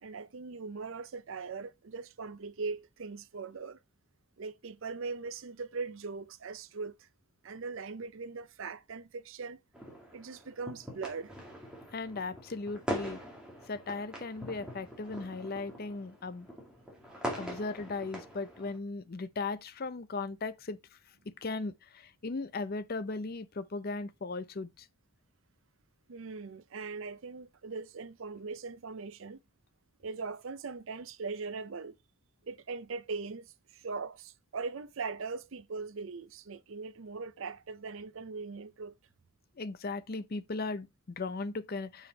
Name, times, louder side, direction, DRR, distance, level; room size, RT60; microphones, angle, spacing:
voice 1, 0.0-3.8 4.4-7.1 7.4-9.6 10.1-11.3 17.3-17.4 26.1-29.4 30.0-32.0 32.4-38.9, right 4 dB, 65° right, 0.5 m, -40 dB
sound 1, 9.7-18.8, equal, 5° right, 2.0 m, -42 dB
voice 2, 11.9-13.2 13.7-16.5 17.4-21.0 21.4-24.9 39.6-42.1, left 3 dB, 45° left, 0.5 m, -37 dB
6.9 x 5.0 x 3.9 m
head